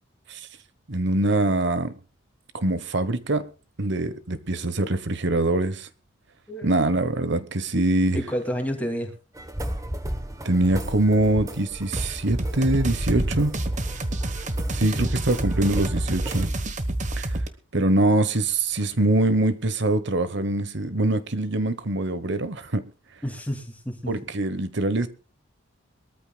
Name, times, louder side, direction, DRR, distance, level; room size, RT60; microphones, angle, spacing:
voice 1, 0.9-1.9 2.5-3.4 3.8-5.9 6.6-8.2 10.4-13.5 14.7-16.5 17.2-17.4 17.7-22.9 24.1-25.1, right 2 dB, 60° right, 1.1 m, -23 dB
voice 2, 8.1-9.1 14.8-15.1 23.2-24.1, equal, 5° left, 2.5 m, -30 dB
sound 1, 9.3-16.5, right 1 dB, 15° right, 1.0 m, -34 dB
sound 2, 11.9-17.5, right 1 dB, 35° right, 1.1 m, -28 dB
23.0 x 13.5 x 2.3 m
head